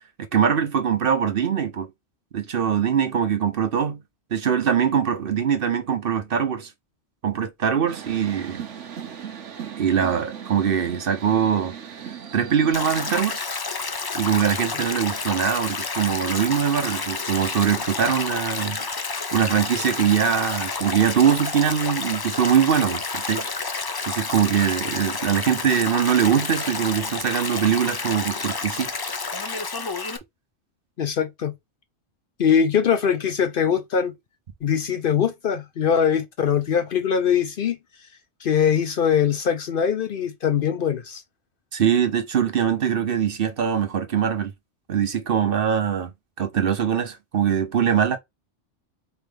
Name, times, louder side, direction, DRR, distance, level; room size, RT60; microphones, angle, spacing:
voice 1, 0.3-1.9 2.3-4.0 4.3-6.7 7.2-8.6 9.8-11.7 12.3-13.4 14.1-18.8 19.3-23.7 24.1-28.9 41.7-44.5 44.9-46.1 46.4-48.2, right 8 dB, 55° right, 0.9 m, -22 dB
sound 1, 7.9-13.2, right 8 dB, 75° right, 1.2 m, -38 dB
Stream, 12.7-30.2, left 4 dB, 35° left, 0.3 m, -30 dB
voice 2, 31.0-31.5 32.4-34.1 34.6-37.8 38.4-41.2, left 7 dB, 55° left, 0.7 m, -22 dB
4.3 x 3.5 x 3.5 m
omnidirectional pair, 1.2 m